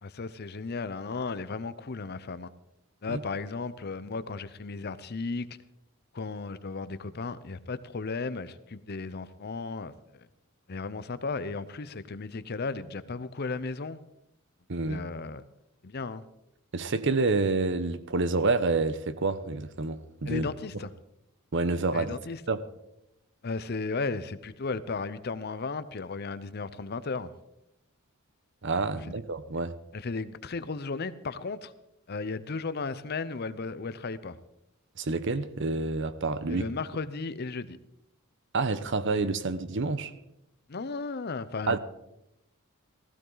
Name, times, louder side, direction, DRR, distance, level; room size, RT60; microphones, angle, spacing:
voice 1, 0.0-2.5 3.0-5.5 6.1-9.9 10.7-14.0 14.9-15.4 15.8-16.2 20.3-20.9 21.9-22.4 23.4-27.3 29.1-29.2 29.9-31.7 32.1-34.4 36.5-37.8 40.7-41.8, left 4 dB, 50° left, 0.7 m, -35 dB
voice 2, 14.7-15.0 16.7-20.5 21.5-22.2 22.5-22.7 28.6-29.7 35.0-36.7 38.5-40.1 41.7-41.8, right 3 dB, 60° right, 0.8 m, -28 dB
16.0 x 15.5 x 4.0 m
head